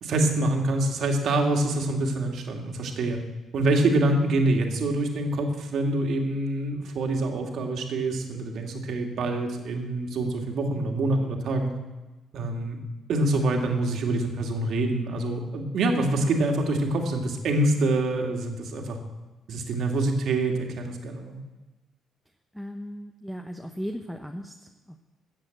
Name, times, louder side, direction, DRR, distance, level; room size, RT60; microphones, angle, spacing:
voice 1, 0.0-3.2 3.5-11.7 12.3-12.8 13.1-19.0 19.5-21.4, right 2 dB, 70° right, 3 dB, 2.2 m, -26 dB
voice 2, 22.5-25.0, equal, ahead, 5 dB, 0.9 m, -37 dB
14.0 x 7.6 x 7.8 m, 1.1 s
cardioid pair, 90°, 0 cm